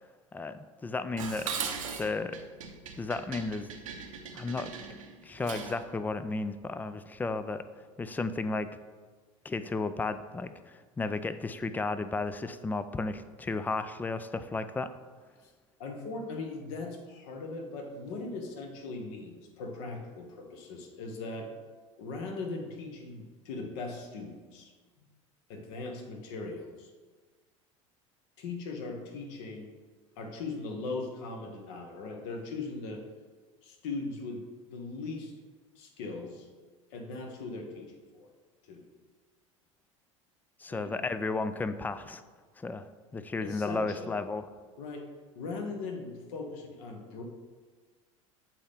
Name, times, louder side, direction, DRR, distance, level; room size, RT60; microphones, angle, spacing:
voice 1, 0.3-1.5 2.0-2.4 3.0-3.7 4.3-4.7 5.2-7.6 8.0-8.7 9.4-14.9 40.6-42.2 42.6-42.9 43.1-44.5, left 3 dB, 10° left, 12 dB, 0.3 m, -33 dB
Dishes pots and pans, 1.2-5.9, right 6 dB, 75° right, 0.7 m, -39 dB
voice 2, 15.8-21.5 22.0-24.7 25.0-25.1 25.5-26.9 28.4-29.7 30.2-33.0 33.6-35.3 35.8-36.5 36.9-38.3 38.6-38.9 40.7-41.0 43.4-44.2 44.8-47.2, left 3 dB, 60° left, 3 dB, 1.1 m, -39 dB
7.3 x 4.3 x 3.6 m, 1.4 s
figure-of-eight pair, 75°, 17 cm